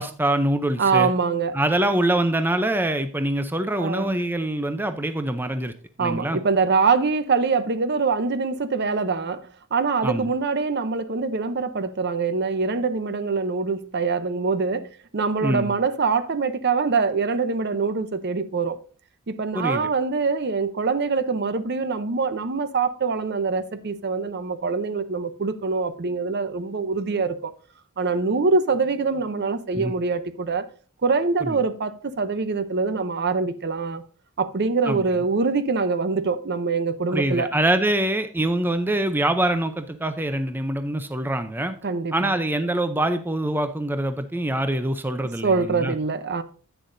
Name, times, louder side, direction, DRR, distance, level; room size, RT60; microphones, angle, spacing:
voice 1, 0.0-1.1 1.5-5.7 6.0-6.4 10.0-10.3 15.4-15.7 19.5-19.9 29.7-29.9 31.4-31.6 34.9-35.0 37.1-41.8 42.1-45.9, right 1 dB, 10° right, 0.6 m, -24 dB
voice 2, 0.8-1.6 3.8-4.2 6.0-18.8 19.3-27.5 28.0-30.6 31.0-34.0 34.4-37.5 41.8-42.3 45.4-46.4, right 4 dB, 50° right, 0.7 m, -24 dB
10.5 x 9.2 x 2.6 m
head